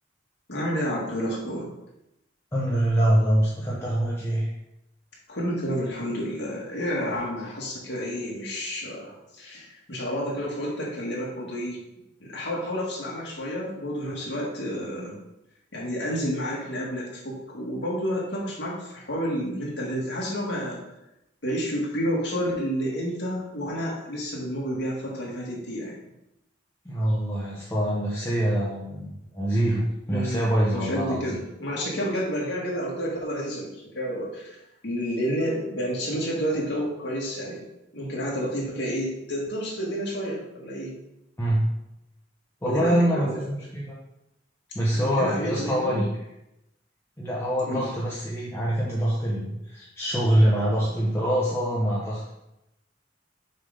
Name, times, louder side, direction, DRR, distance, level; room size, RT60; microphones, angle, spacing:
voice 1, 0.5-1.7 5.3-11.8 12.2-15.2 15.7-20.8 21.4-26.0 30.1-34.6 34.8-37.6 37.9-40.9 42.6-43.5 44.9-46.0 47.6-47.9, equal, 60° left, -4 dB, 2.1 m, -30 dB
voice 2, 2.5-4.5 26.8-31.2 41.4-41.7 42.6-43.9 44.7-46.1 47.2-52.3, right 1 dB, 15° left, -6 dB, 0.9 m, -24 dB
6.6 x 3.6 x 5.3 m, 0.88 s
head